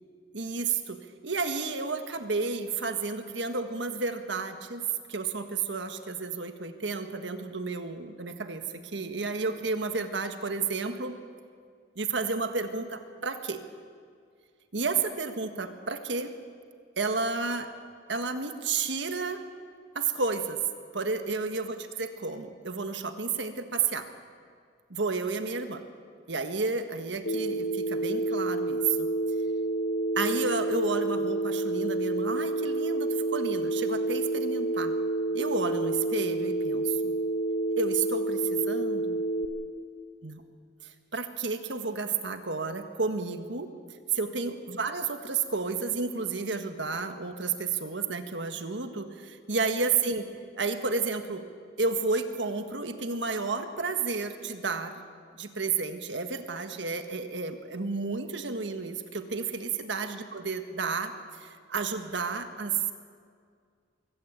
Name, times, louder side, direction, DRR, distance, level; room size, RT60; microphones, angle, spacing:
voice 1, 0.3-4.8 5.1-11.2 11.9-13.6 14.7-16.3 17.0-17.7 18.1-19.4 19.9-20.6 20.9-24.1 24.9-25.8 26.3-29.1 30.1-34.9 35.3-37.1 37.8-39.2 40.2-40.4 40.8-43.7 44.1-50.2 50.5-51.4 51.8-55.0 55.3-62.9, right 4 dB, 70° right, 7 dB, 1.6 m, -31 dB
Telephone, 27.3-39.5, right 2 dB, 90° left, 2.0 m, -29 dB
23.5 x 16.5 x 8.2 m, 2.1 s
head